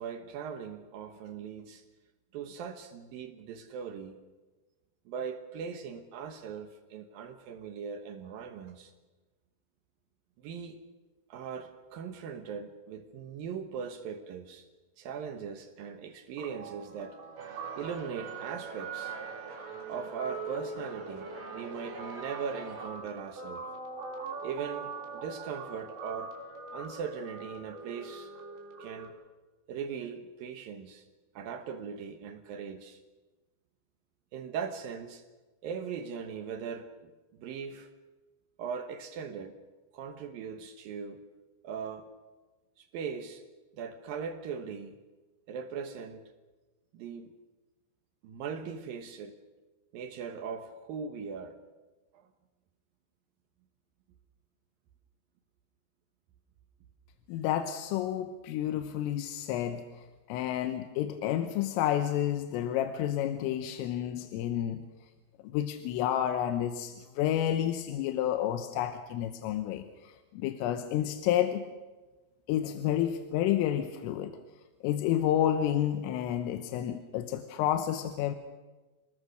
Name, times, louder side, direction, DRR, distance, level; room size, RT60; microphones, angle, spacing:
voice 1, 0.0-1.8 2.3-4.2 5.1-8.9 10.4-10.8 11.3-14.7 15.0-17.2 17.8-19.2 19.9-21.3 21.5-23.7 24.4-26.4 26.7-28.3 28.8-29.2 29.7-31.1 31.3-33.0 34.3-35.2 35.6-37.9 38.6-39.6 39.9-41.2 41.6-42.1 42.8-43.4 43.7-45.0 45.5-46.3 46.9-47.3 48.2-49.3 49.9-51.6 52.1-52.3, right 6 dB, 80° right, 8 dB, 2.0 m, -39 dB
Guitar, 16.4-29.1, right 4 dB, 60° right, 5.3 m, -42 dB
sound 1, 17.4-22.9, right 4 dB, 45° right, 6.6 m, -45 dB
voice 2, 57.3-59.8 60.3-64.8 65.4-71.7 72.5-74.3 74.8-78.4, left 11 dB, 85° left, 8 dB, 3.6 m, -30 dB
28.0 x 20.0 x 6.5 m, 1.2 s
omnidirectional pair, 5.8 m